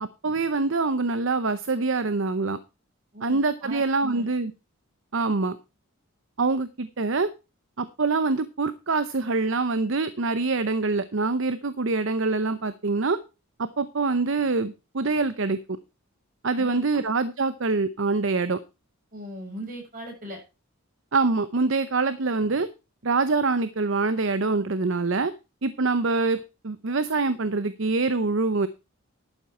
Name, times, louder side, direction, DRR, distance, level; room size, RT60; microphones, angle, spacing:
voice 1, 0.2-2.6 3.2-4.5 5.1-5.6 6.4-7.3 7.8-13.2 13.6-15.6 16.4-18.6 21.1-22.7 23.0-25.3 25.6-28.7, right 3 dB, 55° right, 13 dB, 0.7 m, -25 dB
voice 2, 3.1-4.2 16.5-17.0 19.1-20.4, right 1 dB, 40° right, 1 dB, 6.8 m, -39 dB
11.5 x 8.5 x 4.4 m, 0.29 s
head